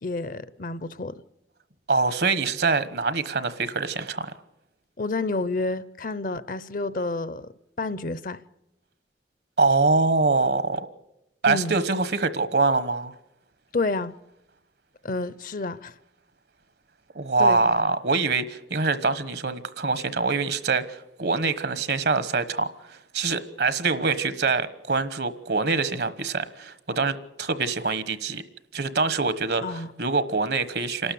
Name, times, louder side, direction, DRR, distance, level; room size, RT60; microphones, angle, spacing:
voice 1, 0.0-1.2 5.0-7.5 7.8-8.4 11.5-11.8 13.7-14.1 15.0-15.9 17.4-17.6 29.6-29.9, left 3 dB, 50° left, 0.7 m, -29 dB
voice 2, 1.9-4.3 9.6-10.9 11.4-13.1 17.1-28.4 28.7-29.6 30.0-31.1, right 4 dB, 70° right, 1.2 m, -24 dB
28.0 x 12.5 x 8.4 m
head